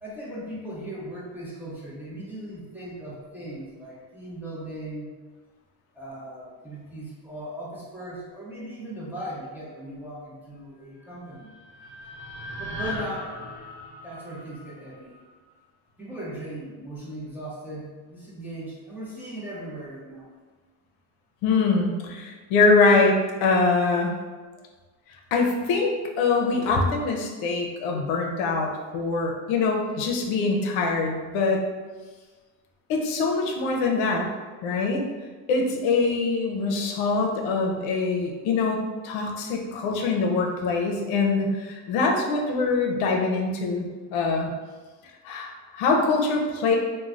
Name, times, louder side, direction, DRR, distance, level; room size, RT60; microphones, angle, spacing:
voice 1, 0.0-5.1 5.9-11.5 12.6-13.5 14.0-15.2 16.0-20.2, right 1 dB, 5° right, -8 dB, 0.6 m, -38 dB
sound 1, 11.1-15.3, left 1 dB, 50° right, 0.7 m, -39 dB
voice 2, 21.4-24.1 25.3-31.6 32.9-34.3 34.6-35.0 35.5-44.5 45.2-46.8, left 3 dB, 75° left, 1 dB, 0.6 m, -24 dB
3.1 x 2.2 x 2.4 m, 1.4 s
cardioid pair, 120°, 48 cm